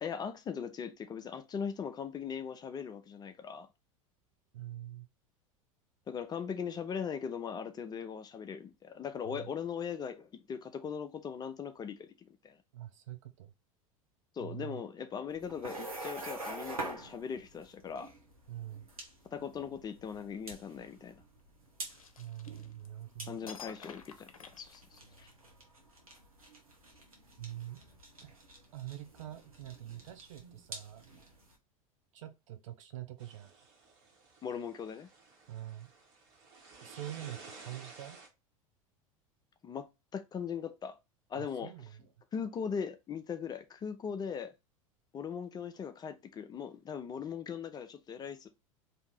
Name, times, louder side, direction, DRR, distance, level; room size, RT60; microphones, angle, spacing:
voice 1, 0.0-3.7 6.1-12.6 14.4-18.1 19.3-21.1 23.3-24.3 24.6-25.3 34.4-35.1 39.6-41.0 41.3-41.7 42.3-44.5 45.1-48.5, left 7 dB, 25° left, 0.5 m, -39 dB
voice 2, 4.5-5.1 9.2-9.5 12.7-13.5 14.4-14.8 18.5-18.9 22.2-23.4 27.4-27.8 28.2-28.4 28.7-31.1 32.1-33.6 35.5-35.9 36.8-38.2 41.4-42.0, right 13 dB, 65° right, 0.7 m, -45 dB
sound 1, 15.3-31.5, right 2 dB, 90° right, 1.0 m, -47 dB
sound 2, 21.9-23.0 23.5-25.3, left 6 dB, 85° left, 0.5 m, -50 dB
sound 3, 33.2-38.3, right 4 dB, 50° right, 1.5 m, -54 dB
2.7 x 2.7 x 3.7 m
figure-of-eight pair, 80°, 18 cm